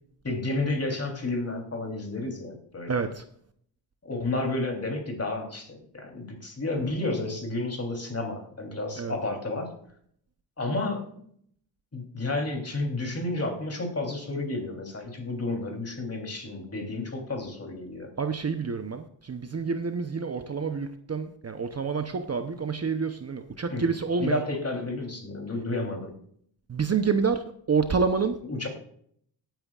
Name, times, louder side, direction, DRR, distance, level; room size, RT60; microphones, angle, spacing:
voice 1, 0.2-3.1 4.0-9.7 10.6-11.2 11.9-18.1 23.7-23.9 24.2-26.1 28.4-28.7, left 2 dB, 35° left, 3.3 m, -31 dB
voice 2, 2.9-3.2 9.0-9.2 18.2-24.4 26.7-28.4, right 5 dB, 35° right, 0.8 m, -28 dB
18.5 x 9.2 x 2.4 m
cardioid pair, 85°, 45 cm